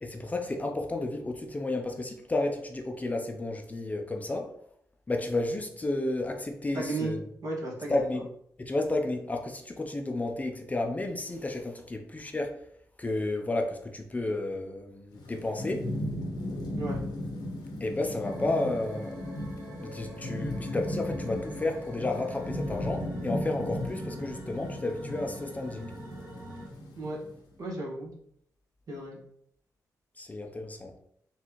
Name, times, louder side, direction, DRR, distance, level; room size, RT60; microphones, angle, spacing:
voice 1, 0.0-4.5 5.1-7.2 7.9-8.2 8.6-12.6 13.0-15.9 17.8-19.2 19.8-25.9 30.2-30.9, left 2 dB, 20° left, 3 dB, 0.5 m, -32 dB
voice 2, 6.7-7.2 7.4-8.1 16.8-17.0 27.0-27.2 27.6-28.1 28.9-29.2, right 2 dB, 60° right, -3 dB, 1.6 m, -34 dB
Thunderstorm / Rain, 15.1-27.4, left 1 dB, 85° left, 0.9 m, -36 dB
sound 1, 18.2-26.7, right 1 dB, 40° right, 1.4 m, -46 dB
4.3 x 3.3 x 3.0 m, 0.70 s
cardioid pair, 95°, 7 cm